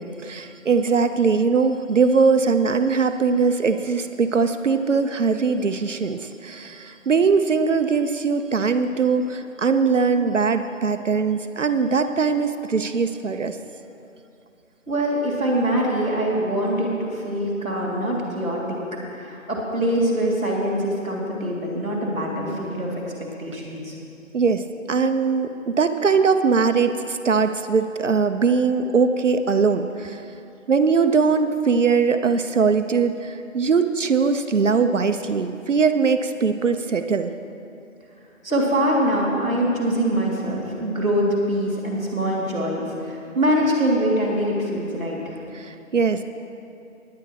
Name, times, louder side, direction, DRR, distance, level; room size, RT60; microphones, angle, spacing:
voice 1, 0.2-13.6 24.3-30.2 30.7-37.3 45.5-46.2, right 5 dB, 65° right, 8 dB, 0.7 m, -21 dB
voice 2, 14.9-18.8 19.1-22.9 23.4-23.9 38.4-45.4, right 1 dB, 5° left, -16 dB, 0.9 m, -23 dB
18.0 x 10.5 x 3.2 m, 2.7 s
figure-of-eight pair, 165°, 41 cm